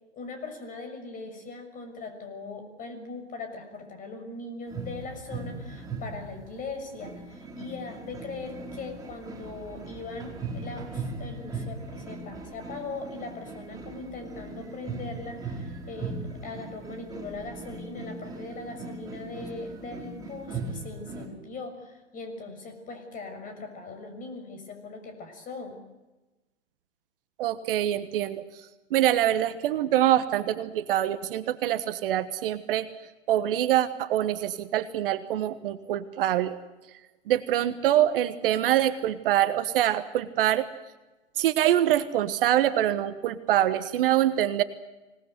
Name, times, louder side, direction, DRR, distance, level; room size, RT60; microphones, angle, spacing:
voice 1, 0.1-25.8, left 3 dB, 20° left, 6 dB, 6.7 m, -40 dB
sound 1, 4.7-21.3, right 3 dB, 10° right, 4.7 m, -39 dB
voice 2, 27.4-28.4 28.9-32.9 33.3-36.6 37.3-40.7 41.4-44.6, right 12 dB, 50° right, 12 dB, 1.3 m, -25 dB
25.5 x 19.0 x 8.0 m, 1.1 s
figure-of-eight pair, 115°, 36 cm